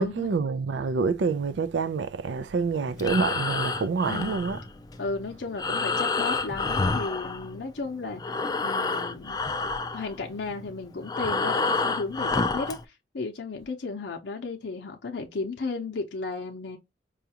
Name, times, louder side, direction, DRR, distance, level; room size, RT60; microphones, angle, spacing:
voice 1, 0.0-4.6, right 4 dB, 80° right, 0.4 m, -27 dB
Breathing, 2.9-7.9 8.1-12.8, left 3 dB, 20° left, 0.3 m, -29 dB
voice 2, 4.1-4.4 5.0-9.4 9.9-16.8, left 3 dB, 70° left, 0.6 m, -34 dB
4.9 x 2.3 x 2.8 m
head